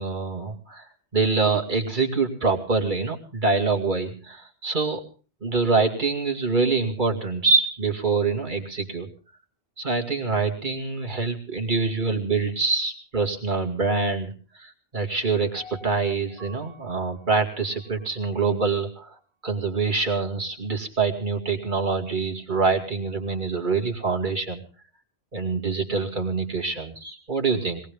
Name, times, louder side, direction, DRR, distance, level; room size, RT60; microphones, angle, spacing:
voice 1, 0.0-5.0 5.4-9.1 9.8-19.1 19.4-24.6 25.3-27.8, right 4 dB, 50° right, 2 dB, 2.5 m, -25 dB
Piano, 15.5-18.6 19.1-19.2, left 1 dB, 70° left, 6.4 m, -49 dB
22.0 x 18.5 x 3.5 m, 0.36 s
omnidirectional pair, 1.1 m